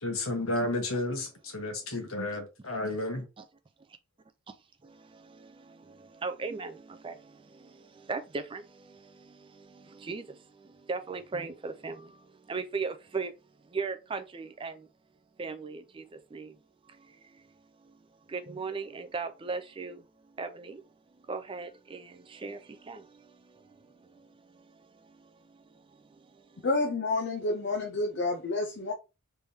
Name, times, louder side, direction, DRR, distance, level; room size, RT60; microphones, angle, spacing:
voice 1, 0.0-3.3, left 2 dB, 75° left, 1.2 m, -32 dB
voice 2, 4.8-13.3 13.6-14.9 15.4-16.6 16.8-26.7, right 4 dB, 25° right, 0.4 m, -39 dB
voice 3, 26.6-28.9, left 2 dB, 55° left, 0.6 m, -29 dB
3.4 x 3.3 x 2.7 m
head